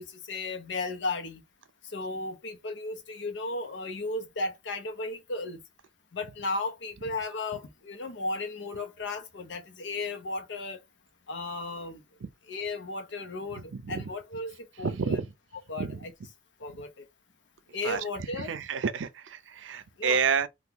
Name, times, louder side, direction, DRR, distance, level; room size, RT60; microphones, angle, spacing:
voice 1, 0.0-1.4 1.9-5.6 6.1-10.8 11.3-12.0 12.5-15.2 15.7-16.1 16.6-16.9 17.7-18.6 20.0-20.2, left 2 dB, 75° left, 0.7 m, -35 dB
voice 2, 13.7-14.1 14.8-15.3 15.8-16.0 16.7-16.8 17.8-18.0 18.4-20.5, right 6 dB, 85° right, 0.5 m, -29 dB
2.9 x 2.3 x 3.6 m
head